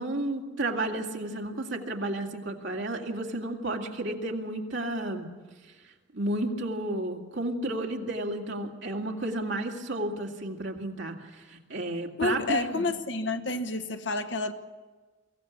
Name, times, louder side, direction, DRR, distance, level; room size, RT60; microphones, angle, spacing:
voice 1, 0.0-5.3 6.1-12.9, right 1 dB, 75° right, 1 dB, 2.4 m, -32 dB
voice 2, 12.2-14.5, left 3 dB, 70° left, 7 dB, 1.3 m, -29 dB
23.5 x 15.5 x 8.4 m, 1.3 s
head